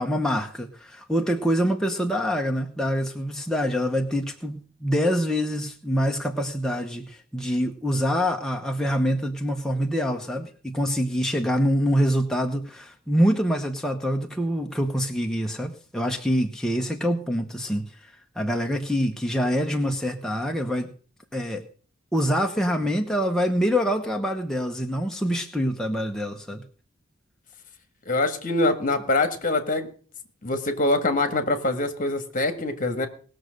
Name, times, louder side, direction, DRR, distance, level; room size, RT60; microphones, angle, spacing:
voice 1, 0.0-20.9 21.3-21.6 22.1-26.6, equal, 5° left, 2 dB, 0.9 m, -25 dB
voice 2, 28.1-29.9 30.4-33.1, left 2 dB, 40° left, 8 dB, 1.7 m, -24 dB
19.0 x 6.5 x 6.4 m, 0.43 s
head